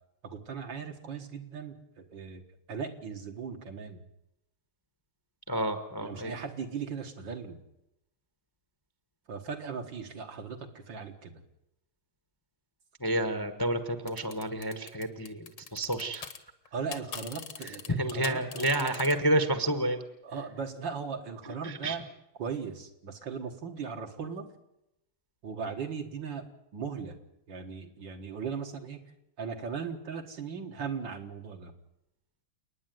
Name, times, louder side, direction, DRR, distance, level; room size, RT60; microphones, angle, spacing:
voice 1, 0.2-2.4 2.7-4.0 6.0-7.6 9.3-11.4 16.7-18.9 20.2-22.0 22.4-24.5 25.4-26.5 26.7-27.2 27.5-29.0 29.4-31.7, right 6 dB, 65° right, 4 dB, 2.4 m, -38 dB
voice 2, 5.5-6.3 13.0-16.3 18.0-20.0 21.6-22.0, right 1 dB, 15° left, 9 dB, 1.0 m, -29 dB
sound 1, 14.1-16.4 16.7-19.1, left 7 dB, 65° left, 1.9 m, -41 dB
29.0 x 9.9 x 9.3 m, 0.86 s
omnidirectional pair, 2.2 m